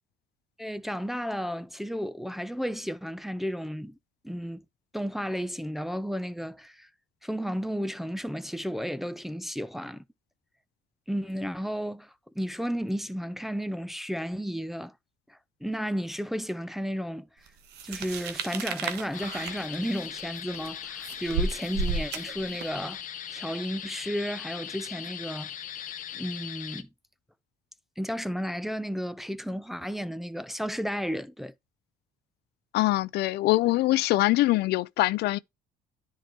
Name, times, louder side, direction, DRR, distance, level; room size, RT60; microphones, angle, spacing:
voice 1, 0.6-4.0 4.2-4.6 4.9-6.9 7.2-10.0 11.1-14.9 15.3-17.3 17.8-23.0 23.3-25.5 26.1-26.9 28.0-31.5, equal, ahead, 0.5 m, -33 dB
sound 1, 17.7-22.9, right 4 dB, 80° right, 1.2 m, -33 dB
sound 2, 19.1-26.8, left 10 dB, 50° left, 0.9 m, -39 dB
voice 2, 32.7-35.4, left 18 dB, 75° left, 0.4 m, -23 dB
10.0 x 4.7 x 2.9 m
cardioid pair, 110°, 17 cm